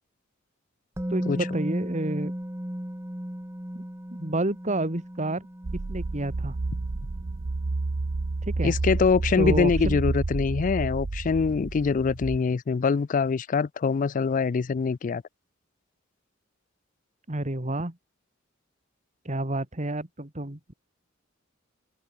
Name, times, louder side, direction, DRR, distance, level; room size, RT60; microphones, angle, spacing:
Musical instrument, 1.0-8.9 9.1-9.3, equal, 15° right, 1.7 m, -36 dB
voice 1, 1.1-2.3 3.8-3.9 4.2-5.5 5.9-6.6 8.5-8.7 9.4-10.0 17.3-17.9 19.3-20.7, right 1 dB, 35° right, 2.3 m, -29 dB
sound 1, 5.6-12.4, right 3 dB, 65° right, 0.8 m, -30 dB
voice 2, 8.6-15.2, left 5 dB, 40° left, 0.4 m, -24 dB
open air
head